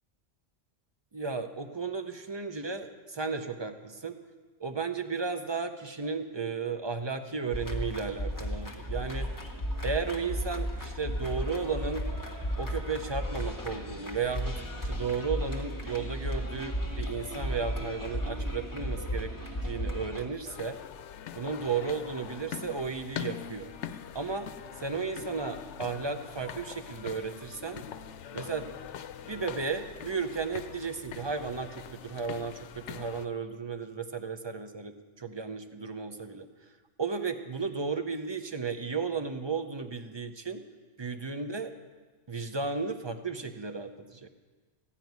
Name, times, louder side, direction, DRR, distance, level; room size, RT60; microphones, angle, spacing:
voice 1, 1.1-4.2 4.6-9.3 9.8-12.1 12.6-19.3 19.6-20.8 21.3-23.7 24.1-24.5 24.8-27.8 28.3-28.7 29.2-36.5 37.0-40.6 41.0-41.7 42.3-44.3, right 5 dB, 30° right, 8 dB, 0.5 m, -34 dB
sound 1, 7.5-20.3, equal, 20° left, 1.2 m, -34 dB
sound 2, 20.5-33.3, left 9 dB, 90° left, 0.9 m, -43 dB
15.0 x 5.8 x 9.3 m, 1.3 s
omnidirectional pair, 1.1 m